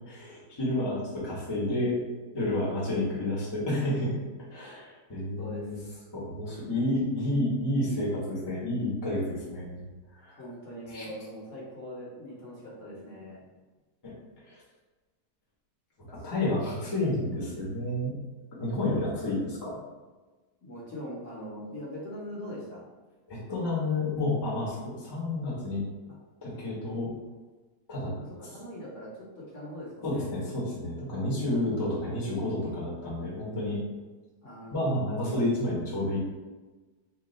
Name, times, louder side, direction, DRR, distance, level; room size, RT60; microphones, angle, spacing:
voice 1, 0.1-1.9 2.3-4.2 4.5-5.7 6.1-9.8 10.2-10.4 10.9-11.0 14.0-14.1 14.5-14.6 16.1-18.1 18.5-19.7 23.3-25.8 26.4-27.1 27.9-28.5 30.0-33.8 34.7-36.2, left 1 dB, 20° left, -6 dB, 0.7 m, -30 dB
voice 2, 5.4-5.8 10.4-13.4 16.1-16.4 20.6-22.9 26.1-26.2 28.2-30.3 31.5-31.6 34.4-34.9, equal, 55° left, -5 dB, 1.1 m, -42 dB
2.9 x 2.3 x 4.0 m, 1.3 s
omnidirectional pair, 1.7 m